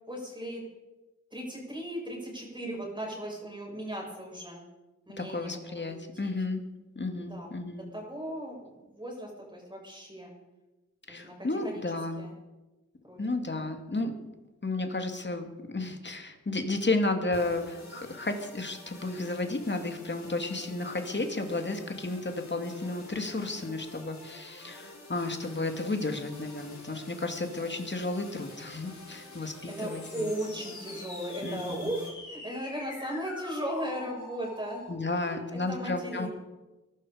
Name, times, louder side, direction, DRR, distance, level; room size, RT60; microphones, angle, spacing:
voice 1, 0.1-0.6 1.3-4.6 5.1-6.3 7.2-7.5 7.9-10.3 11.1-11.8 12.2-12.3 13.1-13.7 29.7-36.3, right 1 dB, 15° right, -2 dB, 6.8 m, -37 dB
voice 2, 5.2-6.6 7.0-7.9 11.1-12.2 13.2-14.1 14.6-30.3 31.4-31.9 34.9-36.3, left 2 dB, 40° left, 5 dB, 2.3 m, -33 dB
sound 1, 17.3-32.1, left 2 dB, 65° left, 5.3 m, -49 dB
sound 2, 25.1-34.9, left 2 dB, 85° left, 6.4 m, -47 dB
22.0 x 12.5 x 5.0 m, 1.1 s
wide cardioid pair, 80°, 29 cm